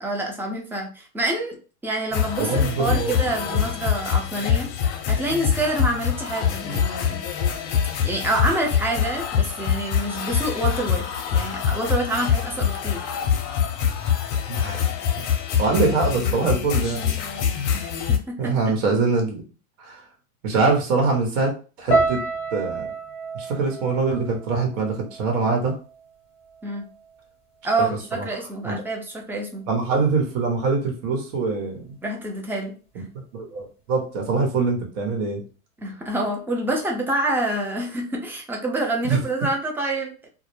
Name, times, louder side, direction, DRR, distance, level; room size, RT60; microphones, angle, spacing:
voice 1, 0.0-1.6 1.8-4.7 5.1-7.2 8.0-13.0 17.7-18.7 26.6-26.8 27.6-29.7 32.0-32.7 35.8-40.3, right 2 dB, 5° right, 1 dB, 0.4 m, -27 dB
sound 1, 2.1-18.2, left 8 dB, 55° left, 0.6 m, -24 dB
voice 2, 2.5-3.3 14.5-15.0 15.6-17.0 18.4-19.4 19.8-20.0 20.4-22.2 22.5-22.9 23.3-25.7 28.1-28.3 28.6-28.8 29.7-32.0 32.9-33.0 33.3-35.4 39.0-39.2, right 4 dB, 60° right, 2 dB, 1.0 m, -23 dB
sound 2, 21.9-26.1 26.4-27.2 27.7-28.0, right 3 dB, 15° left, 0.8 m, -29 dB
2.1 x 2.0 x 3.1 m, 0.35 s
hypercardioid pair, 100°, 43 cm